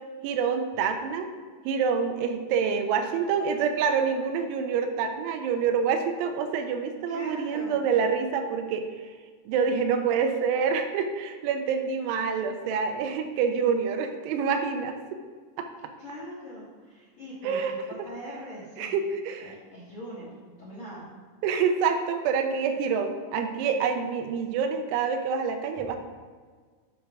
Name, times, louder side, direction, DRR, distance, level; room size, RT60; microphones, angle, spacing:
voice 1, 0.2-1.3 1.7-8.9 9.5-15.0 15.6-15.7 17.4-17.7 18.8-19.5 21.4-26.0, right 6 dB, 85° right, 6 dB, 3.0 m, -27 dB
voice 2, 7.1-7.8 16.0-19.0 19.4-21.1, equal, 65° left, -7 dB, 1.4 m, -41 dB
11.0 x 5.9 x 3.7 m, 1.5 s
omnidirectional pair, 5.6 m